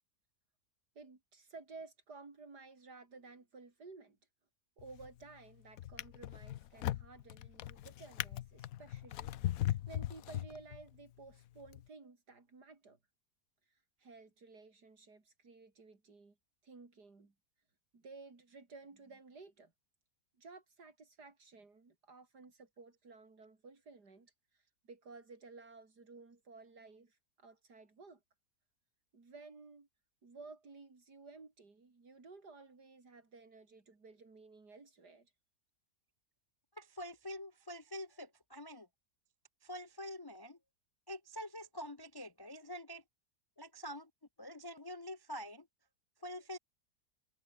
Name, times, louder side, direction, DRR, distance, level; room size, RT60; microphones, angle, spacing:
voice 1, 0.9-4.2 4.8-13.0 14.0-16.4 16.6-17.3 17.9-19.7 20.4-28.2 29.1-29.9 30.2-35.3, right 3 dB, 85° right, 4.2 m, -55 dB
Drawer open or close, 4.8-5.2 5.8-11.0 11.7-11.8, left 13 dB, 70° left, 1.0 m, -39 dB
voice 2, 36.8-38.9 39.6-40.6 41.1-43.0 43.6-44.1 44.4-45.7 46.2-46.6, left 1 dB, 30° left, 0.4 m, -46 dB
omnidirectional pair, 1.7 m